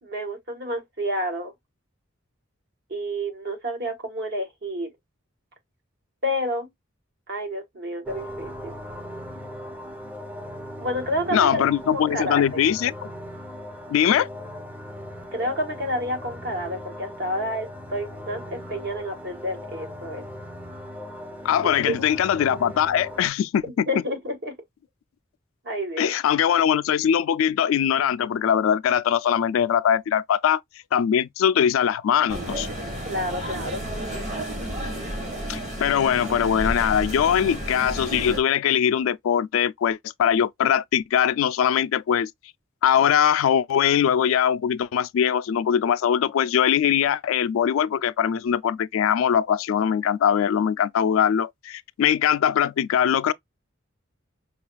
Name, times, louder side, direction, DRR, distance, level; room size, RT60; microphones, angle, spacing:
voice 1, 0.0-1.5 2.9-4.9 6.2-6.7 7.3-8.8 10.8-11.6 11.9-12.6 15.3-20.2 21.6-22.1 23.9-24.5 25.6-26.1 33.0-33.9, equal, 55° right, 1.4 m, -29 dB
sound 1, 8.1-23.3, equal, 10° right, 0.6 m, -39 dB
voice 2, 11.3-13.1 13.9-14.3 21.4-23.9 26.0-30.6 30.9-32.7 35.5-42.3 42.8-53.3, left 8 dB, 85° left, 0.3 m, -21 dB
sound 2, 32.3-38.4, right 1 dB, 35° right, 1.5 m, -31 dB
5.5 x 2.3 x 2.2 m
head